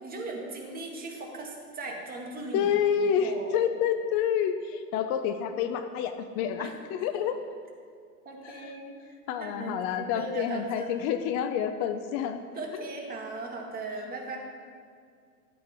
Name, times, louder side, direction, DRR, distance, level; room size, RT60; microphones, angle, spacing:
voice 1, 0.0-2.7 3.0-3.6 6.6-7.1 8.3-8.9 9.4-11.1 12.6-14.4, right 3 dB, 20° right, 0 dB, 1.9 m, -38 dB
voice 2, 2.5-7.4 8.4-8.7 9.3-12.4 12.7-12.8, left 8 dB, 35° left, 9 dB, 0.5 m, -28 dB
12.0 x 8.8 x 4.4 m, 2.2 s
hypercardioid pair, 120°, 46 cm